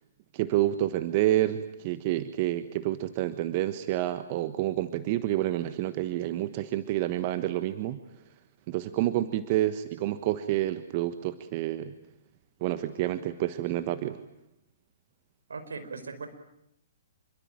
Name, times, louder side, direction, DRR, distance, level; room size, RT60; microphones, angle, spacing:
voice 1, 0.3-8.0 8.7-11.9 12.6-14.2, right 14 dB, 40° right, 11 dB, 1.4 m, -28 dB
voice 2, 15.5-16.3, right 4 dB, 75° right, 8 dB, 4.9 m, -38 dB
27.0 x 23.5 x 9.0 m, 0.79 s
figure-of-eight pair, 125°, 0 cm